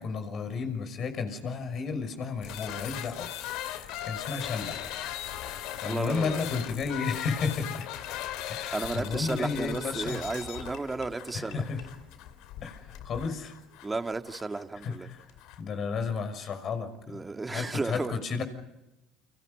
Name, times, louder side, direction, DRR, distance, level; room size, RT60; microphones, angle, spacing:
voice 1, 0.0-4.9 5.8-7.9 8.5-10.2 11.3-11.8 12.6-13.5 14.8-15.2 15.6-18.4, left 5 dB, 50° left, 8 dB, 6.0 m, -33 dB
sound 1, 2.4-15.6, left 11 dB, 70° left, 2.6 m, -39 dB
voice 2, 5.8-6.5 8.7-11.6 13.8-15.1 17.1-18.1, right 3 dB, 15° right, 6 dB, 2.0 m, -33 dB
30.0 x 26.0 x 5.4 m, 0.94 s
supercardioid pair, 90°, 0 cm